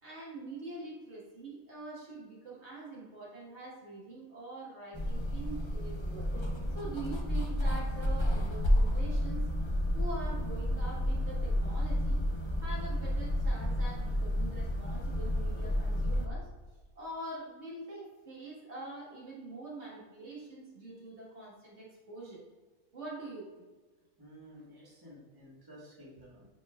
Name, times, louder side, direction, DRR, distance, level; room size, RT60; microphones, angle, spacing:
voice 1, 0.0-6.3 6.7-9.4 9.9-12.2 12.6-16.5 17.0-22.4 22.9-23.5, right 2 dB, 50° right, -6 dB, 2.1 m, -44 dB
sound 1, 4.9-16.3, equal, 40° left, 0.4 m, -31 dB
voice 2, 24.2-26.5, equal, 15° right, -6 dB, 1.7 m, -53 dB
9.5 x 4.7 x 2.5 m, 1.3 s
omnidirectional pair, 1.5 m